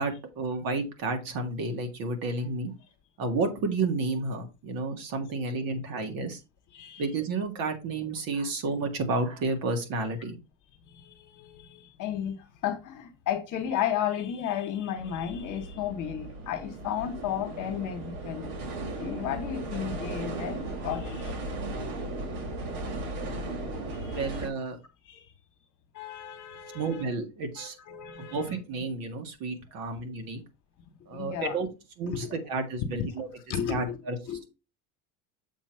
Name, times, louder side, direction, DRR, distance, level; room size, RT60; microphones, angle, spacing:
voice 1, 0.0-2.7 3.2-6.4 7.0-10.4 24.1-24.8 26.7-27.8 28.3-30.4 31.1-31.7 32.0-33.3 33.7-34.2, right 3 dB, 50° right, 1.8 m, -31 dB
voice 2, 6.7-7.1 10.9-18.5 19.0-21.4 24.0-24.2 25.0-25.2 25.9-27.1 27.6-28.6 31.1-31.5 32.1-32.3 32.9-33.1 33.5-34.0 34.3-34.5, left 9 dB, 45° left, 1.6 m, -33 dB
sound 1, 15.0-24.5, right 2 dB, 85° right, 2.2 m, -36 dB
7.2 x 2.9 x 5.8 m
supercardioid pair, 130°, 43 cm